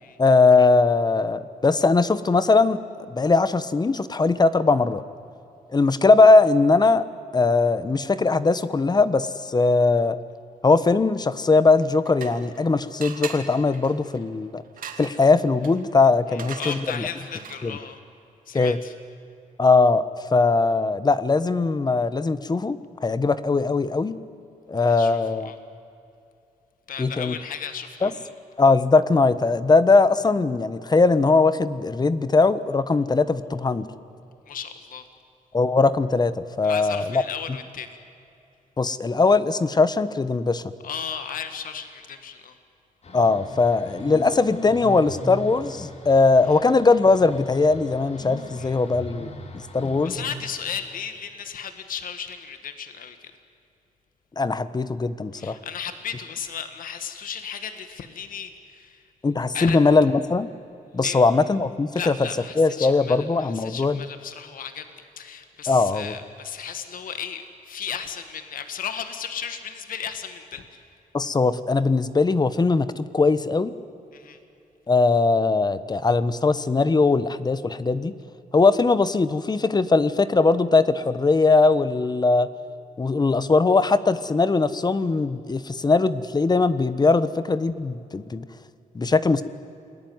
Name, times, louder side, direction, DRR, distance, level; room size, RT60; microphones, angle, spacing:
voice 1, 0.2-2.8 3.1-5.0 5.7-7.1 7.3-10.2 10.6-14.6 15.0-17.1 17.6-17.8 18.5-18.8 19.6-24.2 24.7-25.5 27.0-27.3 28.0-28.1 28.6-33.9 35.5-37.2 38.8-40.6 43.1-49.3 49.7-50.2 54.4-55.6 59.2-60.5 60.9-62.1 62.6-64.0 65.7-66.1 71.1-73.7 74.9-78.2 78.5-82.5 83.0-88.4 88.9-89.4, left 3 dB, 30° left, 14 dB, 1.2 m, -20 dB
sound 1, 11.7-12.6 13.0-17.8, right 7 dB, 80° right, 2.5 m, -40 dB
voice 2, 16.3-18.0 18.5-18.9 24.8-25.6 26.9-28.3 34.5-35.1 36.6-38.0 40.8-42.6 46.5-46.6 48.6-48.8 50.0-53.3 55.3-59.0 59.5-59.8 61.0-61.2 61.9-64.9 65.2-70.8 74.1-74.4, left 7 dB, 80° left, 9 dB, 1.8 m, -35 dB
sound 2, 43.0-50.5, left 1 dB, 50° left, 3.6 m, -39 dB
29.0 x 20.5 x 9.5 m, 2.7 s
cardioid pair, 105°, 14 cm